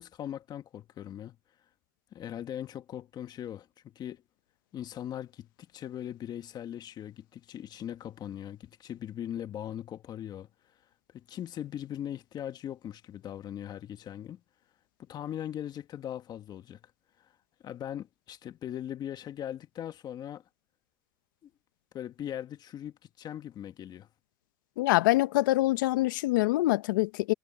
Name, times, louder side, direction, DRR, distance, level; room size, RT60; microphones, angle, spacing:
voice 1, 0.0-1.3 2.1-4.2 4.7-10.5 11.1-14.4 15.0-16.8 17.2-17.3 17.6-20.4 21.4-21.5 21.9-24.1, left 10 dB, 40° left, 1.7 m, -40 dB
voice 2, 24.8-27.3, left 18 dB, 80° left, 0.8 m, -25 dB
supercardioid pair, 105°, 11 cm